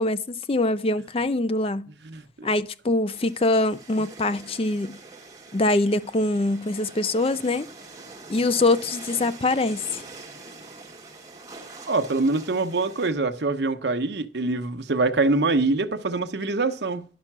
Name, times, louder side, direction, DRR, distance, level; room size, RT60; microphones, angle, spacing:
voice 1, 0.0-1.9 2.4-5.0 5.5-7.7 8.3-10.0, left 2 dB, 30° left, 0.5 m, -24 dB
voice 2, 2.0-2.5 11.9-17.0, right 3 dB, 75° right, 0.9 m, -24 dB
sound 1, 3.1-13.1, right 3 dB, 20° right, 1.4 m, -44 dB
11.0 x 5.5 x 6.0 m
head